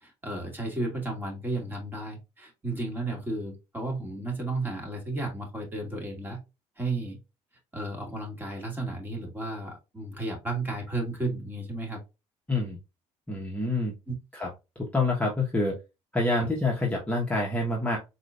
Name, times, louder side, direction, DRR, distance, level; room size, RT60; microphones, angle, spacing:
voice 1, 0.0-6.4 6.8-7.2 7.7-12.0 14.1-14.2 16.4-16.5, right 2 dB, 15° right, 0 dB, 2.3 m, -33 dB
voice 2, 13.3-13.9 14.3-14.5 14.9-15.8 16.1-18.0, left 2 dB, 10° left, -3 dB, 1.3 m, -27 dB
4.4 x 3.7 x 2.5 m, 0.25 s
cardioid pair, 95°, 13 cm